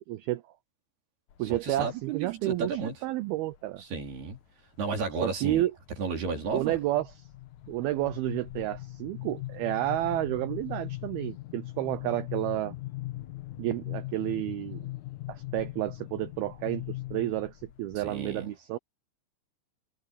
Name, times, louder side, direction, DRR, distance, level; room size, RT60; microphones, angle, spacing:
voice 1, 0.1-0.4 1.4-3.8 5.2-5.7 6.5-7.3 7.7-12.7 13.6-14.9 15.3-18.8, right 15 dB, 80° right, 2.2 m, -31 dB
sound 1, 1.3-1.9 2.3-2.9 3.5-4.4 4.8-5.1 5.5-18.0, left 17 dB, 70° left, 1.9 m, -40 dB
voice 2, 1.4-3.0 3.8-4.4 4.8-5.6 6.0-6.8 18.0-18.5, right 5 dB, 60° right, 6.0 m, -33 dB
omnidirectional pair, 5.2 m